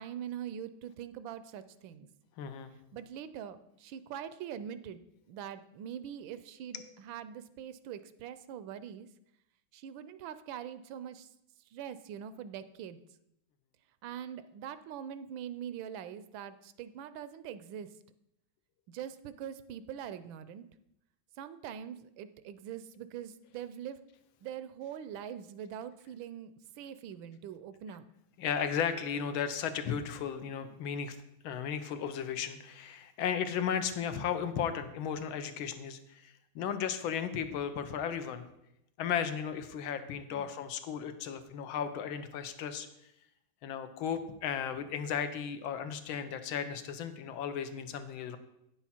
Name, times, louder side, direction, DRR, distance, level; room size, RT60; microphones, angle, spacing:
voice 1, 0.0-2.1 2.9-9.1 9.7-11.3 11.7-13.0 14.0-17.9 18.9-20.7 21.4-24.0 24.4-28.1 40.3-40.5, right 9 dB, 80° right, 13 dB, 1.3 m, -43 dB
voice 2, 2.4-2.7 28.4-31.2 31.4-38.4 39.0-42.9 43.6-48.4, left 8 dB, 85° left, 9 dB, 1.5 m, -35 dB
9.4 x 7.2 x 4.2 m, 0.81 s
omnidirectional pair, 2.2 m